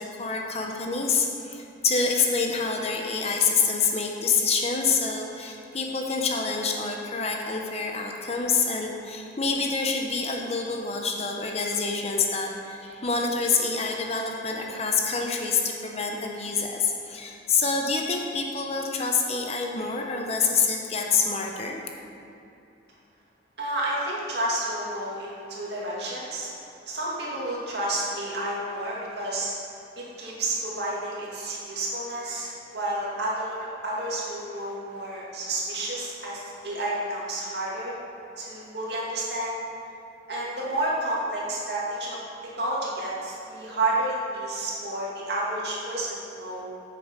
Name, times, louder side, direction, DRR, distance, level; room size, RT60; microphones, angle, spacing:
voice 1, 0.0-21.8, left 4 dB, 35° left, 1 dB, 0.8 m, -27 dB
voice 2, 23.6-26.5 26.9-29.5 30.0-37.9 38.4-39.6 40.3-42.2 42.6-46.7, right 1 dB, 60° right, -5 dB, 2.3 m, -30 dB
9.0 x 6.8 x 5.2 m, 2.8 s
head